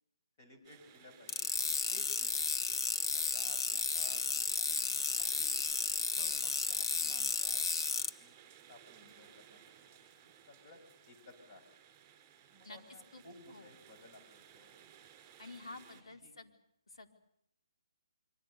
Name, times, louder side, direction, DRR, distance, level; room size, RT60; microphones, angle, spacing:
voice 1, 0.4-1.5 1.9-2.4 2.7-5.7 6.7-7.8 8.2-8.3 8.7-10.8 11.1-11.6 12.5-14.9 15.7-15.8 16.1-16.3, left 2 dB, 30° left, 3 dB, 7.8 m, -58 dB
sound 1, 0.6-16.0, right 9 dB, 20° right, 4.8 m, -59 dB
sound 2, 1.3-8.1, left 4 dB, 50° left, 1.8 m, -33 dB
voice 2, 6.2-6.5 12.6-12.8 13.1-13.2 13.5-13.7 15.4-16.5 16.9-17.1, left 2 dB, 80° left, 4 dB, 4.4 m, -50 dB
26.5 x 25.0 x 6.9 m, 0.75 s
hypercardioid pair, 165°, 3 cm